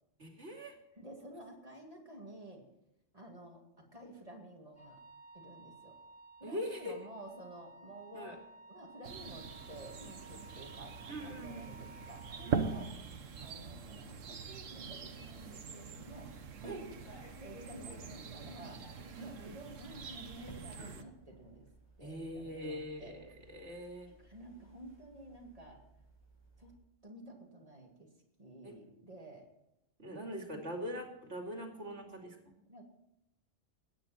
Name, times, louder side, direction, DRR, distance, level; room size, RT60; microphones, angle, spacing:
voice 1, 0.2-0.8 6.4-6.9 8.1-8.4 11.1-11.7 12.4-12.8 16.6-16.8 19.2-19.5 22.0-24.1 28.6-28.7 30.0-32.5, equal, 60° right, 2 dB, 2.9 m, -43 dB
voice 2, 1.0-2.7 3.1-5.0 5.3-5.9 6.4-8.4 8.7-12.9 13.4-16.3 16.6-16.9 17.4-18.8 19.2-21.7 22.0-23.1 24.0-25.8 26.6-26.7 27.0-28.1 28.4-29.5 30.5-30.6 32.7-32.8, right 1 dB, 30° right, 1 dB, 2.4 m, -51 dB
Wind instrument woodwind instrument, 4.7-12.9, right 3 dB, 40° left, 7.3 m, -56 dB
sound 1, 9.0-21.0, right 6 dB, 80° right, 1.4 m, -43 dB
sound 2, 13.3-26.8, right 1 dB, 20° left, 7.3 m, -58 dB
22.0 x 9.8 x 4.3 m, 0.88 s
omnidirectional pair, 1.3 m